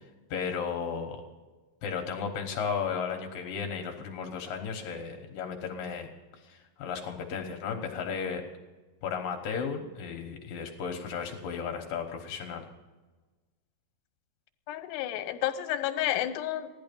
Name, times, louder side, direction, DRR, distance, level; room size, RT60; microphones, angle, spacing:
voice 1, 0.3-1.2 1.8-6.1 6.4-8.4 9.0-12.6, left 6 dB, 65° left, 3 dB, 2.6 m, -34 dB
voice 2, 14.7-16.7, left 12 dB, 90° left, 9 dB, 3.0 m, -31 dB
16.0 x 11.5 x 5.3 m, 1.3 s
omnidirectional pair, 4.7 m